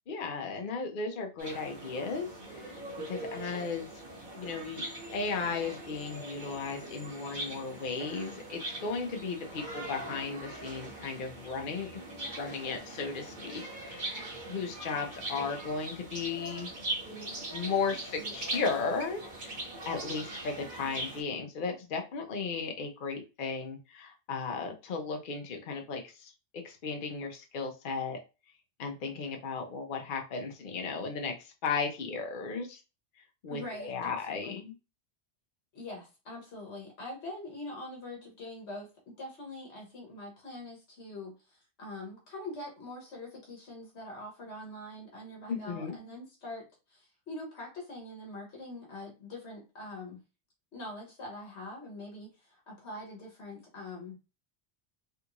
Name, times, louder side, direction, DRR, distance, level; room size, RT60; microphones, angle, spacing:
voice 1, 0.1-3.9 4.3-4.8 5.1-11.9 12.4-16.7 17.5-26.3 26.6-28.2 28.8-32.8 33.4-34.7 45.5-45.9, left 4 dB, 55° left, 4 dB, 0.8 m, -35 dB
sound 1, 1.4-21.2, right 2 dB, 45° right, 1.3 m, -41 dB
voice 2, 33.5-34.6 35.7-50.2 50.7-54.2, left 1 dB, 70° left, -1 dB, 1.2 m, -44 dB
3.5 x 2.4 x 2.9 m, 0.29 s
omnidirectional pair, 1.2 m